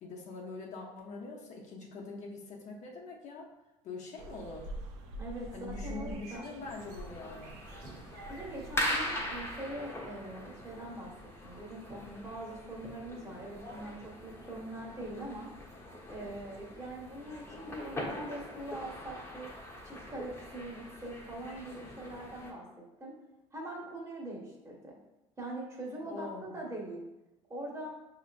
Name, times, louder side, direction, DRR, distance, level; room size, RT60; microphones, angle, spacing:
voice 1, 0.0-3.5 3.8-4.7 5.5-7.6 26.0-26.7, left 3 dB, 55° left, -2 dB, 1.0 m, -44 dB
sound 1, 4.2-9.6, right 1 dB, 75° right, 0.7 m, -46 dB
voice 2, 5.2-6.5 8.3-11.1 11.4-15.5 16.1-19.5 19.8-23.2 23.5-25.0 25.4-27.0 27.5-27.9, right 1 dB, 20° right, -2 dB, 1.4 m, -42 dB
sound 2, 6.6-22.5, left 1 dB, 20° left, 1.1 m, -41 dB
5.6 x 2.9 x 2.6 m, 0.95 s
supercardioid pair, 80°, 14 cm